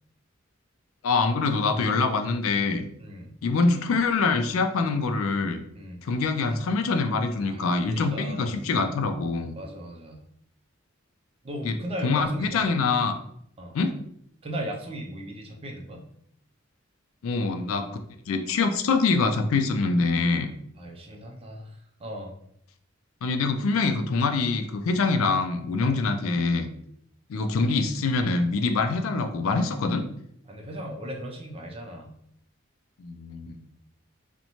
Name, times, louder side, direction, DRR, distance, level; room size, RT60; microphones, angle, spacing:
voice 1, 1.0-2.9 3.4-5.6 6.0-9.5 11.6-11.7 12.0-13.1 13.7-13.9 17.2-17.9 18.3-20.5 23.2-26.7 27.3-30.0 33.0-33.6, left 4 dB, 85° left, 7 dB, 0.4 m, -24 dB
voice 2, 3.0-3.3 5.7-6.0 7.4-7.6 7.9-8.6 9.5-10.2 11.4-12.8 13.6-13.8 14.4-16.0 20.7-22.3 25.8-26.0 30.5-32.1, equal, 30° right, 1 dB, 0.4 m, -37 dB
2.6 x 2.1 x 2.9 m, 0.69 s
head